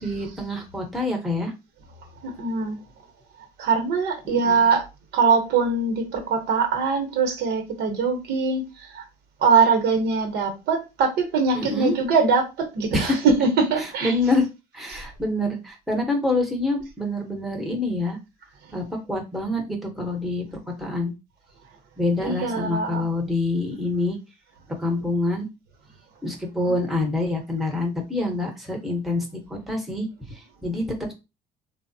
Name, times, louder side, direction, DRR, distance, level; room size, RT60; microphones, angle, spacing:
voice 1, 0.0-1.5 4.2-4.6 11.5-12.0 12.9-13.2 13.8-14.5 14.7-18.2 18.7-20.4 20.8-21.1 22.0-24.2 24.8-25.5 26.2-31.1, left 2 dB, ahead, 0.7 m, -26 dB
voice 2, 2.2-2.8 3.6-4.8 5.1-9.0 9.4-14.1 14.9-15.0 22.2-23.1 26.7-26.8, right 5 dB, 80° right, 0.9 m, -22 dB
3.1 x 2.0 x 2.6 m
cardioid pair, 110°, 17 cm